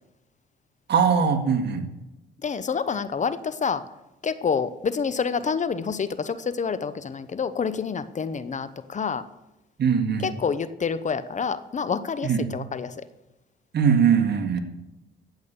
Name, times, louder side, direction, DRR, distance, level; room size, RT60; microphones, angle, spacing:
voice 1, 0.9-1.9 9.8-10.3 12.2-12.4 13.7-14.6, right 6 dB, 60° right, 4 dB, 2.1 m, -21 dB
voice 2, 2.4-3.8 4.2-9.2 10.2-13.0, left 6 dB, 40° left, 13 dB, 0.8 m, -28 dB
14.0 x 8.5 x 6.9 m, 0.95 s
cardioid pair, 90°, 20 cm